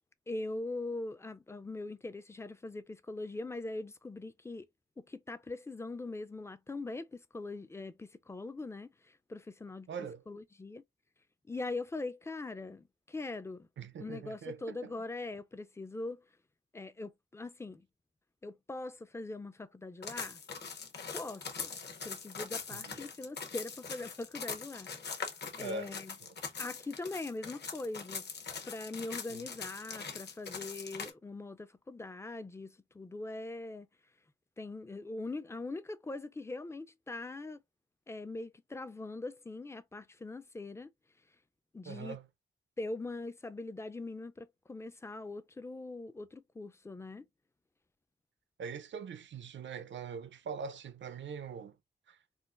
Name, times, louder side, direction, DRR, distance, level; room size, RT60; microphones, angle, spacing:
voice 1, 0.3-4.7 5.0-8.9 9.3-9.9 10.3-10.8 11.5-13.7 14.0-16.2 16.7-17.9 18.4-20.4 21.1-21.7 22.0-25.2 25.6-26.2 26.6-28.3 28.7-33.9 34.6-37.6 38.1-40.9 41.7-42.2 42.8-47.3, left 2 dB, 15° left, 0.3 m, -42 dB
voice 2, 9.9-10.2 13.8-14.9 22.7-23.0 25.6-25.9 29.3-29.4 41.8-42.2 48.6-51.8 52.1-52.2, right 5 dB, 70° right, 0.5 m, -42 dB
sound 1, 20.0-31.1, left 5 dB, 60° left, 0.8 m, -42 dB
3.8 x 2.4 x 2.4 m
wide cardioid pair, 130°, 20 cm